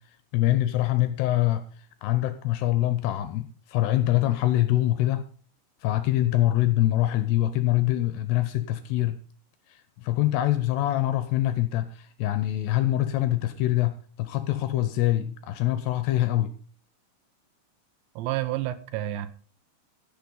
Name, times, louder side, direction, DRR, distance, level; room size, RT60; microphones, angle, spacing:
voice 1, 0.3-1.6 2.0-5.2 5.8-9.2 9.7-16.5, left 14 dB, 80° left, 2.6 m, -24 dB
voice 2, 18.2-19.3, right 14 dB, 80° right, 3.1 m, -29 dB
15.5 x 6.9 x 5.4 m
omnidirectional pair, 5.3 m